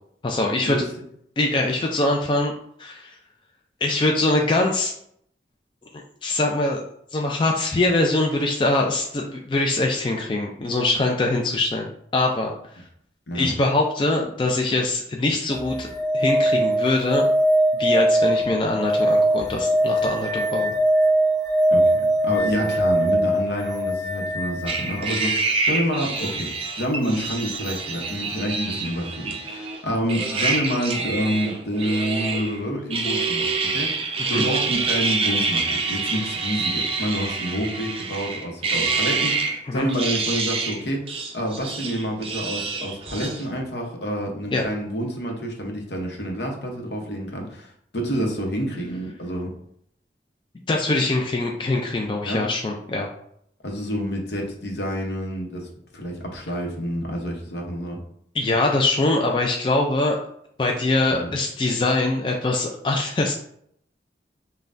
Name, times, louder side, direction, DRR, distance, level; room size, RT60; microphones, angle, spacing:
voice 1, 0.2-0.8 1.4-2.5 2.8-3.1 3.8-4.9 5.9-6.8 7.1-11.9 12.1-12.5 13.3-15.9 16.1-17.3 17.8-20.7 34.3-34.4 39.7-39.9 44.5-44.6 50.7-53.1 58.3-60.2 60.6-63.3, left 2 dB, 30° left, 1 dB, 0.3 m, -23 dB
sound 1, 15.5-25.3 27.6-27.7, right 1 dB, ahead, 0.9 m, -21 dB
voice 2, 21.7-26.5 26.8-49.5 52.2-52.4 53.6-58.0 61.1-61.3, equal, 75° left, 1 dB, 0.8 m, -28 dB
sound 2, 24.7-29.8 30.1-32.6 32.9-39.6 39.9-40.8 41.1-43.4, right 4 dB, 30° right, 0.5 m, -26 dB
5.4 x 2.2 x 2.5 m, 0.69 s
head